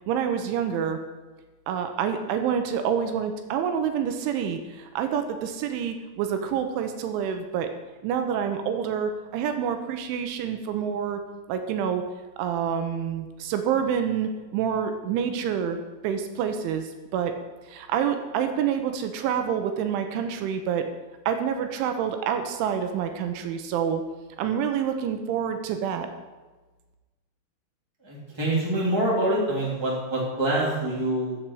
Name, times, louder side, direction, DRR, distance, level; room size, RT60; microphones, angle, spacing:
voice 1, 0.1-1.0 1.7-7.7 8.0-11.2 11.5-12.0 12.4-15.8 16.0-17.3 17.7-20.9 21.3-24.0 24.4-26.1, right 8 dB, 80° right, 7 dB, 3.2 m, -27 dB
voice 2, 28.0-31.4, right 1 dB, 10° right, -5 dB, 2.0 m, -25 dB
14.5 x 7.7 x 4.8 m, 1.2 s
omnidirectional pair, 5.5 m